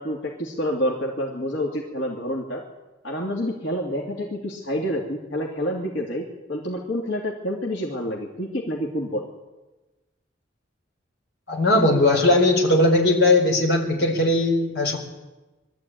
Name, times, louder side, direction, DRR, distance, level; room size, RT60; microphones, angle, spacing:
voice 1, 0.0-2.6 3.0-9.3, equal, 90° left, -2 dB, 2.7 m, -28 dB
voice 2, 11.5-15.0, left 2 dB, 65° left, 0 dB, 4.5 m, -19 dB
22.0 x 13.5 x 9.2 m, 1.2 s
head